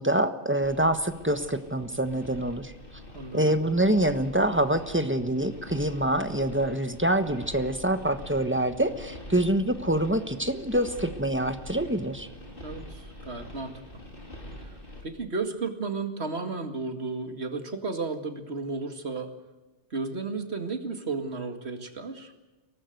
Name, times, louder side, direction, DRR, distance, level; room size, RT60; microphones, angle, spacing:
voice 1, 0.0-2.7 3.3-12.3, right 1 dB, 10° right, 10 dB, 1.2 m, -26 dB
sound 1, 0.6-15.0, left 1 dB, 50° left, 4.8 m, -45 dB
voice 2, 3.1-3.6 12.6-14.0 14.6-14.7 15.0-19.3 19.9-22.3, right 4 dB, 65° right, 7 dB, 2.4 m, -33 dB
23.5 x 18.0 x 7.9 m, 1.2 s
omnidirectional pair, 1.2 m